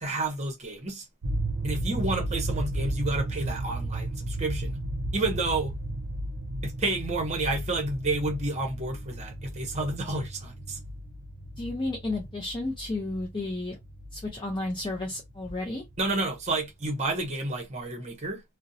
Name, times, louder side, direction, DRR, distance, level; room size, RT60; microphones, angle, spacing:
voice 1, 0.0-1.1 1.6-4.8 5.1-5.7 6.6-10.8 16.0-18.4, right 2 dB, 30° right, 0.8 m, -30 dB
sound 1, 1.2-16.1, right 1 dB, 90° right, 0.5 m, -34 dB
voice 2, 11.6-13.8 14.1-15.8, left 2 dB, 20° left, 0.5 m, -32 dB
2.5 x 2.0 x 2.6 m
head